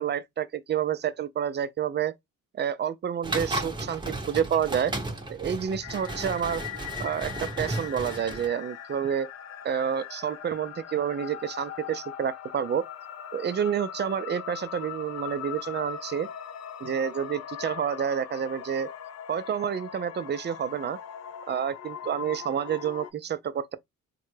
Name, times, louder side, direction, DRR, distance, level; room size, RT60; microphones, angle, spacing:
voice 1, 0.0-2.1 2.5-4.9 5.3-6.6 7.0-9.3 9.6-12.8 13.3-16.3 16.8-18.9 19.3-21.0 21.5-23.8, right 8 dB, 35° right, 0.4 m, -29 dB
sound 1, 3.2-8.5, right 2 dB, 15° right, 0.8 m, -34 dB
sound 2, 5.8-23.1, left 9 dB, 55° left, 0.5 m, -40 dB
3.8 x 2.2 x 3.1 m
cardioid pair, 90°, 30 cm